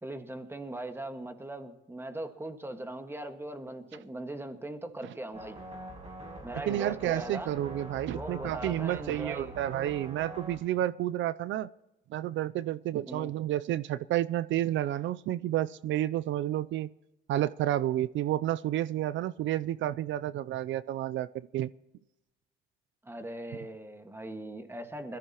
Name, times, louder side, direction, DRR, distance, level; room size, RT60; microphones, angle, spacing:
voice 1, 0.0-5.6 6.4-7.5 8.1-9.5 13.1-13.3 23.0-25.2, right 1 dB, 10° right, 1.6 m, -40 dB
sound 1, 5.3-10.6, right 2 dB, 35° right, 6.5 m, -43 dB
voice 2, 6.7-11.7 12.1-16.9 17.3-21.7, right 13 dB, 75° right, 0.4 m, -30 dB
21.5 x 14.5 x 2.9 m
cardioid pair, 90°, 20 cm